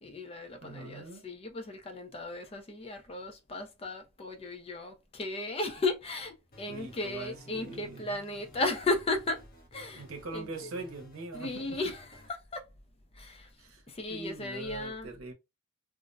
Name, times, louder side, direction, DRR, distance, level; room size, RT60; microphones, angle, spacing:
voice 1, 0.0-9.4 9.7-10.0 10.3-10.5 11.3-12.2 12.5-12.7 13.1-13.5 13.9-15.1, left 2 dB, 30° left, 0.4 m, -35 dB
voice 2, 0.6-1.2 6.7-8.2 9.9-11.8 13.6-13.8 14.1-15.3, right 3 dB, 80° right, 0.7 m, -42 dB
sound 1, 6.5-12.3, left 1 dB, 45° left, 0.8 m, -54 dB
2.5 x 2.0 x 2.5 m
head